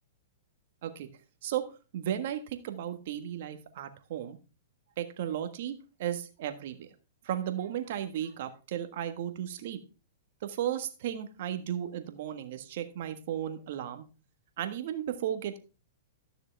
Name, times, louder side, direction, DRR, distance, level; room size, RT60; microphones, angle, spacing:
voice 1, 1.4-4.4 5.0-6.9 7.2-9.8 10.4-14.0 14.6-15.6, right 10 dB, 60° right, 8 dB, 1.4 m, -35 dB
12.5 x 6.6 x 3.4 m, 0.33 s
hypercardioid pair, 130°, 0 cm